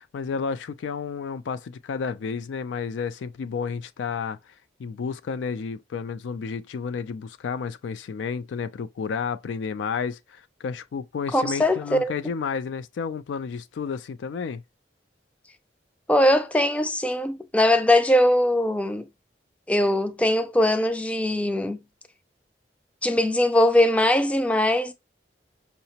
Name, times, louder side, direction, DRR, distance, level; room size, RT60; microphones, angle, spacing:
voice 1, 0.0-4.4 4.8-14.6, left 6 dB, 90° left, 0.3 m, -31 dB
voice 2, 11.3-12.1 16.1-19.1 19.7-21.8 23.0-24.9, left 1 dB, 5° left, 0.3 m, -21 dB
5.6 x 2.0 x 2.8 m
head